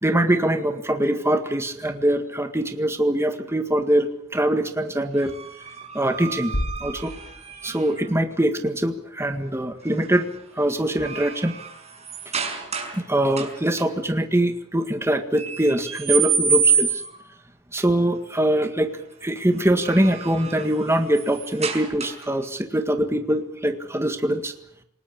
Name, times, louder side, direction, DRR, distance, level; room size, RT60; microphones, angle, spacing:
voice 1, 0.0-5.3 5.9-6.5 6.8-7.1 7.6-10.3 10.5-11.5 12.9-17.0 17.7-18.9 19.2-24.5, right 1 dB, 10° right, 6 dB, 1.8 m, -23 dB
sound 1, 5.2-8.1 9.9-10.2 10.6-13.0 13.3-13.9 15.4-17.3 19.6-22.4, right 6 dB, 30° right, 5.6 m, -28 dB
sound 2, 6.5-8.3, left 1 dB, 85° left, 2.8 m, -32 dB
28.0 x 19.0 x 8.6 m, 0.74 s
head